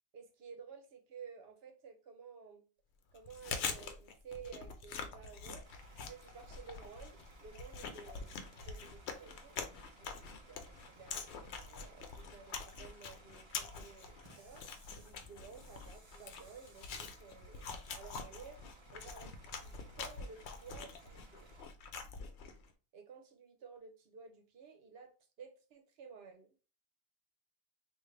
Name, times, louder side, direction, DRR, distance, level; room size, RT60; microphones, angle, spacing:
voice 1, 0.1-2.6 3.1-5.7 6.0-14.6 15.0-18.6 18.9-21.5 22.9-25.1 25.4-26.5, right 6 dB, 70° right, 0.9 m, -54 dB
Chewing mastication, 3.1-22.7, left 5 dB, 90° left, 0.9 m, -45 dB
Bus / Idling, 5.6-21.6, right 2 dB, 30° right, 0.7 m, -61 dB
3.6 x 2.5 x 3.2 m
omnidirectional pair, 1.1 m